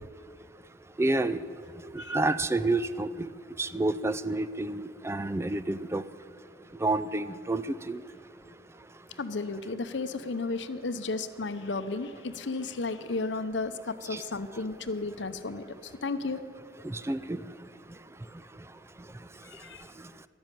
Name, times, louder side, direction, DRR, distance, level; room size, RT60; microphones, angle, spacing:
voice 1, 1.0-1.4 1.9-3.3 3.6-6.0 6.8-8.0 14.1-14.2 16.8-17.4, right 2 dB, 15° right, 14 dB, 0.4 m, -29 dB
voice 2, 9.2-16.4 19.4-19.8, left 3 dB, 70° left, 12 dB, 0.8 m, -33 dB
12.5 x 12.0 x 9.1 m, 2.3 s
head